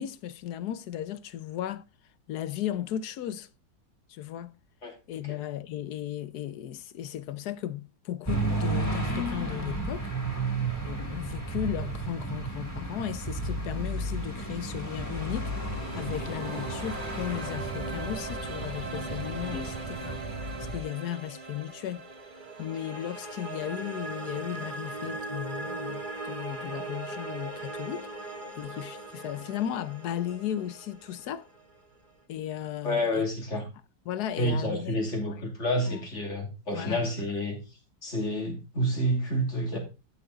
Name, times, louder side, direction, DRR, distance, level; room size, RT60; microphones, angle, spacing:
voice 1, 0.0-1.8 2.3-3.5 4.1-4.5 5.1-10.1 10.8-15.5 15.9-20.2 20.7-22.0 22.6-28.1 28.6-31.5 32.3-33.2 34.1-35.0 35.3-35.4 35.9-36.0 36.7-37.1, left 11 dB, 65° left, 1.2 m, -35 dB
sound 1, 8.2-20.8, right 2 dB, 10° left, 3.2 m, -33 dB
sound 2, 15.0-32.1, right 2 dB, 30° right, 1.7 m, -39 dB
voice 2, 32.8-33.6 34.4-37.6 38.0-39.8, equal, 40° left, 3.2 m, -29 dB
12.0 x 7.2 x 3.9 m
omnidirectional pair, 2.0 m